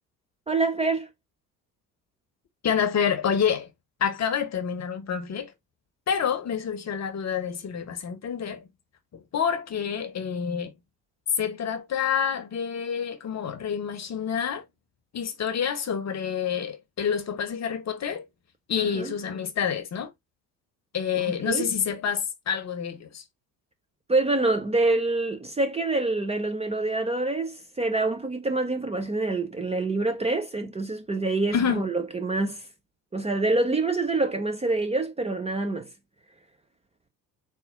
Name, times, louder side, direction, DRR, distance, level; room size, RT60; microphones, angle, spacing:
voice 1, 0.5-1.1 18.8-19.1 21.4-21.7 24.1-32.6 33.1-35.9, right 2 dB, 15° right, 0.7 m, -26 dB
voice 2, 2.6-3.7 4.0-5.5 6.1-8.7 9.1-10.7 11.4-14.6 15.1-18.3 18.7-20.1 20.9-23.2 31.5-31.9, left 7 dB, 35° left, 1.0 m, -28 dB
4.2 x 2.5 x 3.7 m
figure-of-eight pair, 55°, 49 cm